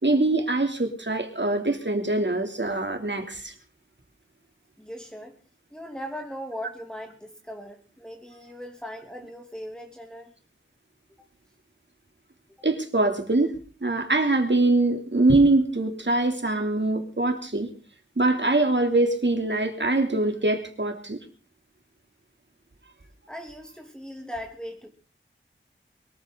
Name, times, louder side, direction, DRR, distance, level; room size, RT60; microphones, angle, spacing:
voice 1, 0.0-3.5 12.6-13.5 13.8-17.7 18.2-21.2, right 2 dB, 60° right, 5 dB, 3.2 m, -23 dB
voice 2, 4.8-5.3 5.7-10.3 12.6-12.7 23.3-24.9, equal, 5° left, 1 dB, 2.9 m, -39 dB
23.0 x 14.0 x 4.0 m, 0.38 s
wide cardioid pair, 50°, 21 cm